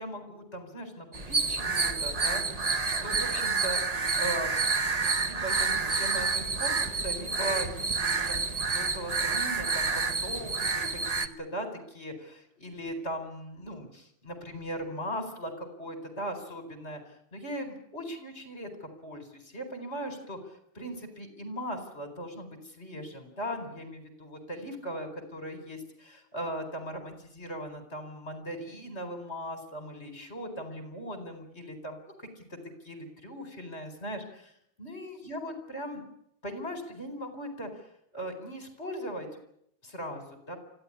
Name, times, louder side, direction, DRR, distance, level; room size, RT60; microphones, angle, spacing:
voice 1, 0.0-3.8 4.1-4.6 4.9-8.1 8.4-32.6 32.8-34.5 34.8-36.0 36.4-39.3 39.8-40.2 40.5-40.6, equal, 30° left, 7 dB, 4.7 m, -39 dB
sound 1, 1.1-11.3, right 4 dB, 35° right, 0.6 m, -29 dB
25.5 x 15.5 x 9.9 m, 0.74 s
omnidirectional pair, 2.4 m